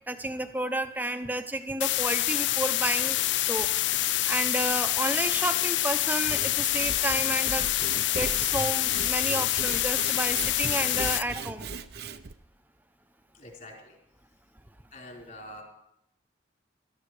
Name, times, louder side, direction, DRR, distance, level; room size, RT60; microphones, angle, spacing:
voice 1, 0.1-4.0 4.3-7.7 8.1-11.7, right 1 dB, 10° right, 9 dB, 0.8 m, -31 dB
sound 1, 1.8-11.2, left 15 dB, 85° left, 0.4 m, -26 dB
Sawing / Wood, 6.1-12.3, right 4 dB, 60° right, 0.7 m, -39 dB
voice 2, 13.4-13.9 14.9-15.6, left 1 dB, 45° left, -1 dB, 4.4 m, -45 dB
17.0 x 13.0 x 4.9 m, 0.79 s
head